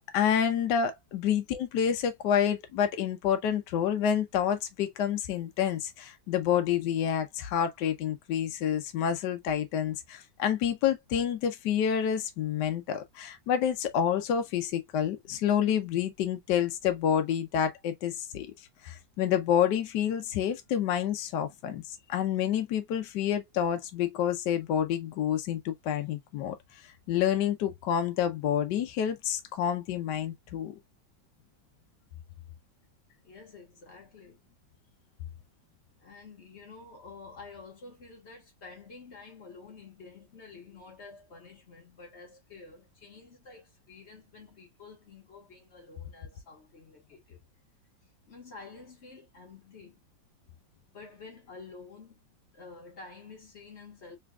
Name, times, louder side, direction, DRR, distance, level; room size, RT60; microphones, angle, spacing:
voice 1, 0.1-18.5 18.8-26.6 27.1-30.7, left 9 dB, 70° left, 1.2 m, -28 dB
voice 2, 33.2-34.6 36.0-47.4 48.2-50.1 50.9-52.2 52.5-54.2, left 4 dB, 40° left, 1.5 m, -49 dB
3.8 x 3.4 x 2.2 m
omnidirectional pair, 2.1 m